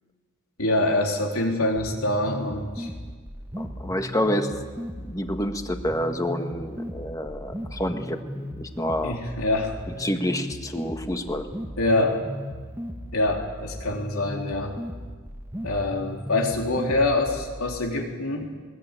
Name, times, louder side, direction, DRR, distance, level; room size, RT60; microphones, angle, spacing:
voice 1, 0.6-2.9 9.0-9.8 11.8-12.2 13.1-14.8 15.6-18.5, left 2 dB, 80° left, 1 dB, 3.6 m, -25 dB
sound 1, 1.8-17.8, equal, 10° right, 1.4 m, -37 dB
voice 2, 3.6-4.5 5.1-9.2 10.0-11.5, equal, 15° left, 6 dB, 1.5 m, -28 dB
21.5 x 20.5 x 9.1 m, 1.6 s
head